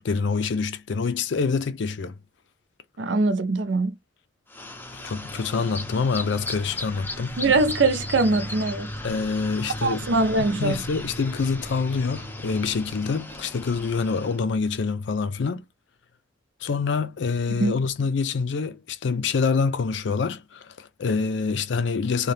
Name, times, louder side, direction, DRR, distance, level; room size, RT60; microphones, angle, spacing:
voice 1, 0.0-2.1 5.0-7.3 9.0-10.1 10.4-15.7 16.6-22.3, left 5 dB, 70° left, 0.5 m, -26 dB
voice 2, 3.0-3.9 7.4-8.9 9.8-10.8 17.6-17.7, right 3 dB, 70° right, 0.5 m, -22 dB
sound 1, 4.5-14.4, left 1 dB, 10° left, 0.5 m, -36 dB
2.7 x 2.2 x 3.2 m
head